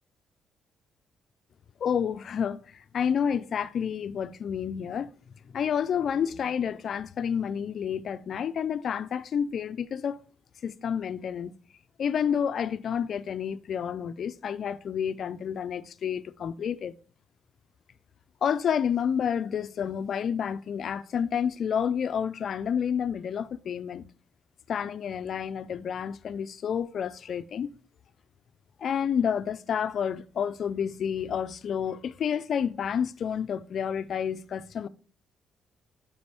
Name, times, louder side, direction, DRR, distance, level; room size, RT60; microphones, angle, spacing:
voice 1, 1.8-5.1 5.5-10.2 10.6-11.5 12.0-16.9 18.4-24.0 24.7-27.7 28.8-34.9, left 8 dB, 60° left, 0.4 m, -29 dB
5.3 x 4.8 x 4.4 m
cardioid pair, 90°, 0 cm